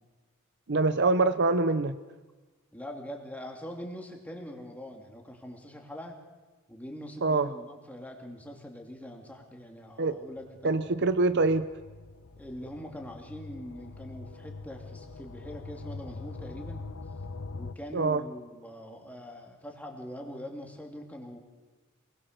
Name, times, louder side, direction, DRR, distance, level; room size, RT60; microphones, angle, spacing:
voice 1, 0.7-2.0 7.2-7.5 10.0-10.2 10.6-11.7 17.9-18.2, right 3 dB, 55° right, 12 dB, 0.7 m, -24 dB
voice 2, 2.7-6.2 6.7-10.8 12.4-16.8 17.5-21.4, equal, 5° left, 1 dB, 2.6 m, -43 dB
sound 1, 10.4-17.7, left 3 dB, 70° left, 0.9 m, -43 dB
27.0 x 20.5 x 6.7 m, 1.3 s
head